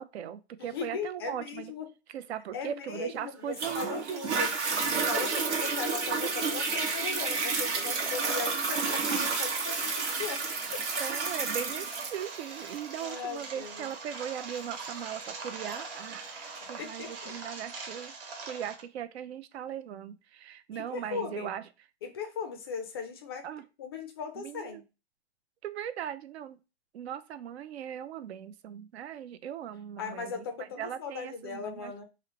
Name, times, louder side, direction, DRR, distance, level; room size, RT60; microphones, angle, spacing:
voice 1, 0.0-1.7 2.1-4.4 5.1-5.4 7.8-8.0 11.0-18.1 18.5-21.6 23.4-23.6 24.4-24.8 25.6-26.6 26.9-32.0, right 10 dB, 70° right, 0.5 m, -39 dB
voice 2, 0.6-1.9 2.5-4.5 5.1-10.4 10.7-11.0 13.0-13.9 16.8-17.3 20.7-21.5 22.0-23.5 23.8-24.8 30.0-32.0, left 5 dB, 25° left, 0.3 m, -38 dB
Toilet flush, 3.6-16.6 17.2-17.3, right 4 dB, 90° right, 1.2 m, -31 dB
sound 1, 7.2-18.8, right 4 dB, 55° right, 1.2 m, -43 dB
3.1 x 2.5 x 2.9 m
hypercardioid pair, 150°, 33 cm